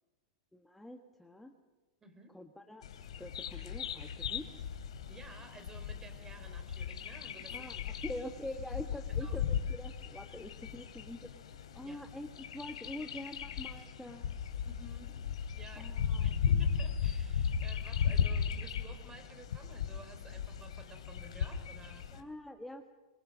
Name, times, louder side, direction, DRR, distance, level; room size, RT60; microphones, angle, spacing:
voice 1, 0.5-1.5 2.3-2.8 3.2-4.4 7.5-11.3 11.7-14.3 15.8-16.3 22.1-22.9, left 1 dB, 5° left, 4 dB, 1.5 m, -45 dB
voice 2, 2.0-2.4 5.1-8.1 9.2-9.4 11.8-12.0 14.6-22.1, right 2 dB, 20° right, 7 dB, 4.8 m, -54 dB
Bird vocalization bird call bird song, 2.8-22.2, left 7 dB, 80° left, 3.2 m, -36 dB
25.0 x 22.0 x 6.3 m, 1.3 s
hypercardioid pair, 110°, 3 cm